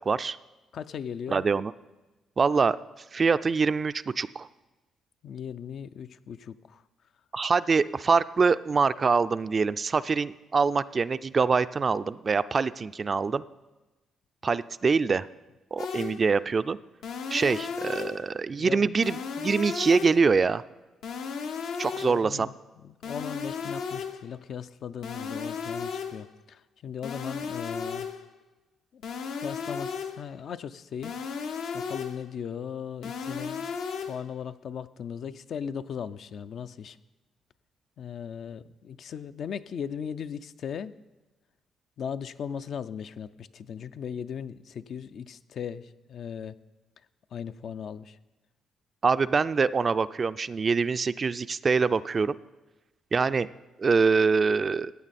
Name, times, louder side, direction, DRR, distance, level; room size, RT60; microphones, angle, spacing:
voice 1, 0.1-0.4 1.3-1.7 2.4-2.8 3.1-4.5 7.3-13.4 14.4-15.3 15.7-16.8 17.3-20.6 21.8-22.5 49.0-52.3 53.1-53.5 53.8-54.9, right 5 dB, 35° right, 14 dB, 0.3 m, -24 dB
voice 2, 0.7-1.4 5.2-6.8 18.6-18.9 22.0-22.5 22.8-28.1 28.9-29.0 29.3-31.1 31.7-33.7 34.1-37.0 38.0-40.9 42.0-46.6 47.3-48.2, left 7 dB, 60° left, 12 dB, 0.4 m, -38 dB
sound 1, 15.8-16.3 17.0-18.3 19.0-20.3 21.0-22.3 23.0-24.3 25.0-26.3 27.0-28.3 29.0-30.3 31.0-32.3 33.0-34.3, left 6 dB, 80° left, 0.8 m, -35 dB
15.0 x 9.1 x 4.2 m, 1.1 s
cardioid pair, 90°, 0 cm